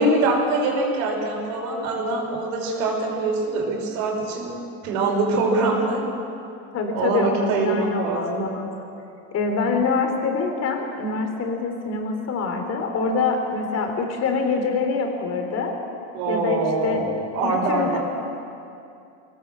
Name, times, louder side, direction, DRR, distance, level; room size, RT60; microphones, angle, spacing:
voice 1, 0.0-4.6 4.8-6.0 6.9-8.4 16.1-18.0, right 2 dB, 80° right, -1 dB, 5.8 m, -24 dB
voice 2, 6.7-8.7 9.3-15.7 16.3-17.0 17.4-18.0, left 4 dB, 35° left, 3 dB, 3.8 m, -25 dB
21.0 x 19.0 x 7.7 m, 2.6 s
supercardioid pair, 145°, 41 cm